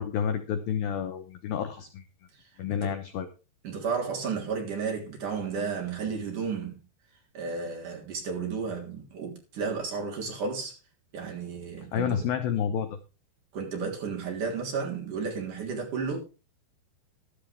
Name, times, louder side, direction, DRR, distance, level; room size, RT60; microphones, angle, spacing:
voice 1, 0.0-2.0 2.6-3.3 11.9-13.0, left 8 dB, 70° left, 2.4 m, -29 dB
voice 2, 3.6-6.8 7.3-10.7 11.1-12.2 13.5-16.2, right 5 dB, 45° right, 4.5 m, -33 dB
13.5 x 12.5 x 3.4 m
omnidirectional pair, 5.2 m